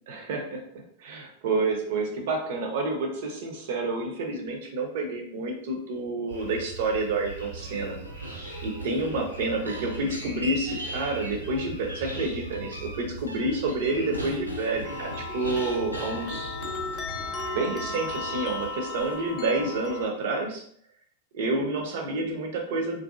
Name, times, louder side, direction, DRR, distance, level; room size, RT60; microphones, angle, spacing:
voice 1, 0.1-0.6 1.0-8.0 8.6-16.6 17.5-20.6 21.3-23.0, right 2 dB, 55° right, 2 dB, 0.6 m, -29 dB
sound 1, 6.3-18.7, right 3 dB, 85° right, 1.1 m, -41 dB
sound 2, 7.6-17.7 18.0-18.1 19.0-19.3 19.5-20.0, equal, 85° left, 0.4 m, -40 dB
sound 3, 14.8-20.1, left 3 dB, 30° left, 0.5 m, -36 dB
2.6 x 2.5 x 2.4 m, 0.65 s
figure-of-eight pair, 90°, 0 cm